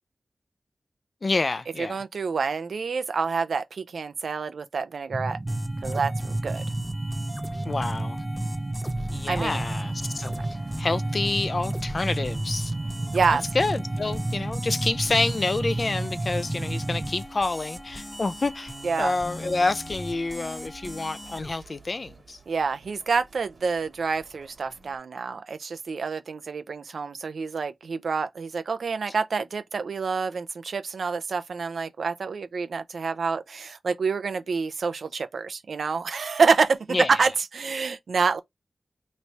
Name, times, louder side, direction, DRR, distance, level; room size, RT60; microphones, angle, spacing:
voice 1, 1.2-2.0 7.6-8.2 9.1-10.4 10.8-12.7 13.5-18.7 19.0-22.4 36.9-37.1, left 3 dB, 50° left, 0.5 m, -28 dB
voice 2, 1.8-5.4 5.8-6.6 9.3-9.6 13.1-13.4 18.8-19.1 22.5-38.4, right 5 dB, 85° right, 0.5 m, -27 dB
sound 1, 5.1-17.1, right 2 dB, 30° right, 0.4 m, -31 dB
sound 2, 5.5-21.5, equal, 10° left, 1.0 m, -39 dB
sound 3, 8.9-25.0, right 5 dB, 60° right, 1.4 m, -52 dB
3.1 x 2.7 x 4.4 m
wide cardioid pair, 65°, 0 cm